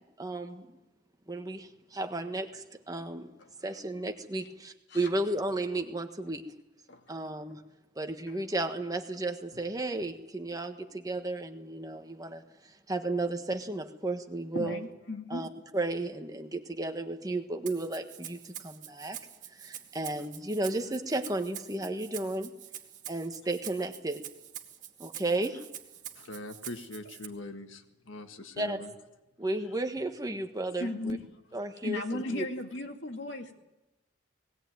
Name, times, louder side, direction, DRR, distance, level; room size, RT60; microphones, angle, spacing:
voice 1, 0.2-0.7 1.3-3.3 3.6-6.4 7.1-7.6 7.9-14.8 15.3-19.2 19.5-22.5 23.1-24.2 25.0-25.6 28.6-28.8 29.4-31.2 31.5-32.4, right 2 dB, 20° right, 5 dB, 1.4 m, -33 dB
voice 2, 14.5-15.5 30.8-31.2 31.8-33.5, left 2 dB, 65° left, 4 dB, 2.4 m, -36 dB
Rattle (instrument), 17.7-27.3, right 10 dB, 40° right, 2.0 m, -45 dB
voice 3, 26.2-28.9, left 2 dB, 85° left, 7 dB, 1.6 m, -42 dB
19.5 x 17.5 x 9.4 m, 1.0 s
head